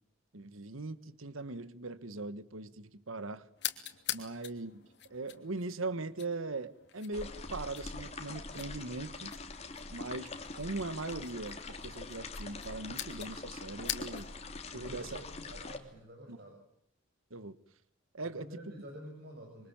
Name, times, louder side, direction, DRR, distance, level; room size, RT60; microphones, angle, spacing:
voice 1, 0.3-3.5 4.1-4.8 5.1-9.3 9.9-14.3 14.7-15.2 16.3-16.4 17.3-17.6 18.1-18.5, right 3 dB, 90° right, 15 dB, 1.4 m, -40 dB
sound 1, 3.6-14.5, left 11 dB, 55° left, 3.0 m, -45 dB
sound 2, 7.1-15.8, left 3 dB, 30° left, 3.1 m, -44 dB
voice 2, 14.7-16.6 18.2-19.7, equal, 50° right, 2 dB, 6.6 m, -49 dB
26.0 x 25.0 x 8.8 m, 0.73 s
head